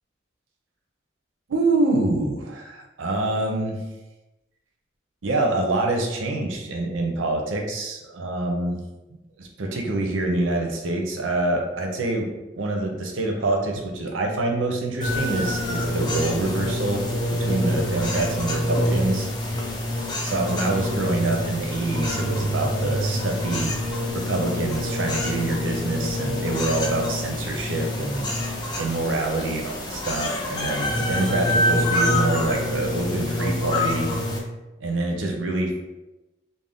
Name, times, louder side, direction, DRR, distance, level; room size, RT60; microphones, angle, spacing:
voice 1, 1.5-3.8 5.2-8.8 9.4-12.3 12.5-17.0 17.3-19.3 20.2-23.7 24.1-28.3 28.8-34.1 34.8-35.8, right 2 dB, 90° right, 2 dB, 0.5 m, -26 dB
sound 1, 15.0-34.4, left 1 dB, 20° left, 0.3 m, -26 dB
2.5 x 2.1 x 3.4 m, 1.0 s
head